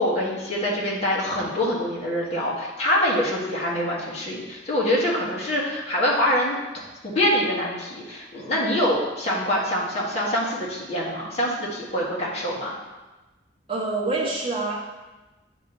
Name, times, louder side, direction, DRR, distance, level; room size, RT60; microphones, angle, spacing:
voice 1, 0.0-12.8, left 1 dB, 35° left, -5 dB, 1.6 m, -25 dB
voice 2, 13.7-14.8, right 3 dB, 30° right, -4 dB, 1.3 m, -26 dB
8.5 x 3.0 x 5.5 m, 1.1 s
head